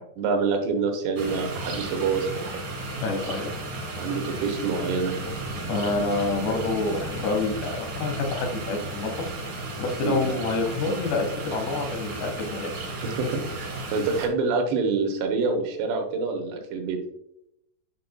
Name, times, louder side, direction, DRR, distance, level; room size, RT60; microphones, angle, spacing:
voice 1, 0.2-2.5 4.0-5.3 10.0-10.3 13.0-17.0, right 4 dB, 90° right, 3 dB, 3.3 m, -26 dB
sound 1, 1.2-14.3, right 2 dB, 55° right, 1.3 m, -34 dB
voice 2, 3.0-3.5 5.7-9.3 9.8-12.7, left 3 dB, 90° left, 3 dB, 3.5 m, -27 dB
sound 2, 5.1-8.2, left 1 dB, 65° left, 0.9 m, -40 dB
9.3 x 4.9 x 2.2 m, 0.77 s
omnidirectional pair, 4.8 m